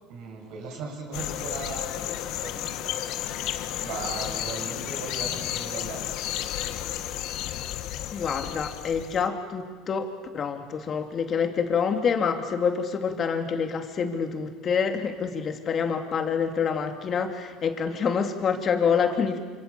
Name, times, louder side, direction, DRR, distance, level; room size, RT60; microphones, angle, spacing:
voice 1, 0.1-6.4, right 4 dB, 65° right, 1 dB, 7.6 m, -38 dB
sound 1, 1.1-9.3, left 12 dB, 65° left, 1.5 m, -32 dB
voice 2, 8.1-19.4, left 6 dB, 35° left, 5 dB, 3.0 m, -27 dB
28.0 x 26.5 x 7.1 m, 1.5 s
supercardioid pair, 115°, 0 cm